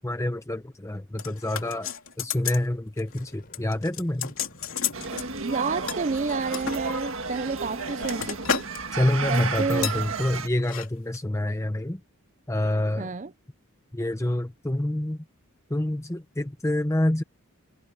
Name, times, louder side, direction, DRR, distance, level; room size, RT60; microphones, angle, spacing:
voice 1, 0.0-1.9 2.2-4.3 8.9-12.0 12.5-13.1 13.9-15.2 15.7-17.2, left 1 dB, 15° left, 0.7 m, -27 dB
sound 1, 1.2-2.7 3.0-3.2 3.5-5.3 5.9-6.8 7.4-8.8 9.1-9.3 9.8-10.0 10.6-10.9 11.1-11.2, left 7 dB, 65° left, 3.1 m, -32 dB
Boom, 3.1-6.3, equal, 40° left, 4.3 m, -53 dB
sound 2, 4.9-10.5, right 4 dB, 60° right, 1.9 m, -33 dB
voice 2, 5.4-8.7 9.3-9.9 13.0-13.3, right 4 dB, 35° right, 0.5 m, -30 dB
head